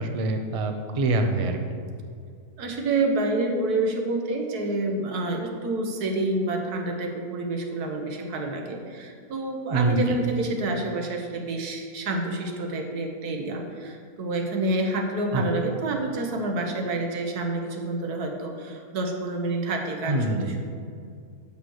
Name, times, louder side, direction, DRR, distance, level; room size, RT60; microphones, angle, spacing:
voice 1, 0.0-1.8 9.7-10.2 15.3-15.4 20.1-20.6, right 2 dB, 45° right, 5 dB, 0.4 m, -25 dB
voice 2, 2.6-20.6, right 2 dB, 85° right, 3 dB, 1.6 m, -28 dB
7.8 x 5.7 x 6.4 m, 2.2 s
omnidirectional pair, 1.6 m